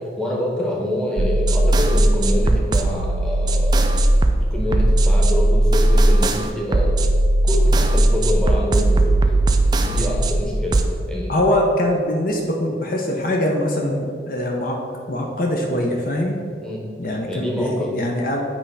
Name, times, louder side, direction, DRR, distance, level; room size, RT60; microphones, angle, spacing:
voice 1, 0.2-3.9 4.5-7.0 7.4-9.3 9.8-11.4 16.6-16.9 17.3-18.0, left 1 dB, 5° left, -3 dB, 1.0 m, -26 dB
sound 1, 1.2-10.9, right 1 dB, 20° right, 0.3 m, -17 dB
voice 2, 11.3-14.8 15.1-16.4 17.0-18.4, left 1 dB, 45° left, 0 dB, 0.7 m, -22 dB
8.6 x 3.3 x 5.5 m, 2.2 s
head